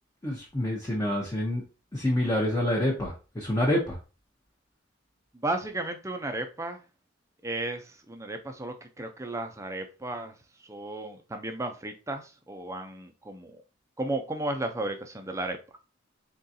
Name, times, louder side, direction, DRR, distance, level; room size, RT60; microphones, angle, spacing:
voice 1, 0.2-1.6 1.9-4.0, left 1 dB, 15° left, -3 dB, 0.8 m, -27 dB
voice 2, 5.3-6.8 7.4-13.6 14.0-15.6, right 2 dB, 15° right, 6 dB, 0.6 m, -34 dB
3.8 x 3.6 x 2.7 m, 0.32 s
head